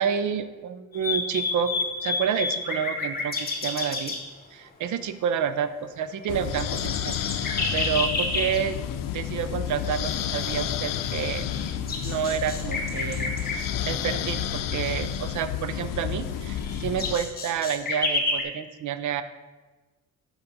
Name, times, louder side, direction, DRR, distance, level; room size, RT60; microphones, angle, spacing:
voice 1, 0.0-1.7 2.0-4.1 4.5-8.8 9.1-11.5 12.0-13.4 13.9-19.2, right 8 dB, 65° right, 12 dB, 0.6 m, -29 dB
sound 1, 0.9-4.2 6.2-6.3 6.5-8.6 10.8-10.9 11.5-13.6 15.7-15.8 16.3-18.4, left 3 dB, 30° left, 1.4 m, -29 dB
sound 2, 6.3-17.2, left 9 dB, 80° left, 0.6 m, -30 dB
7.0 x 5.9 x 5.2 m, 1.3 s
cardioid pair, 120°, 32 cm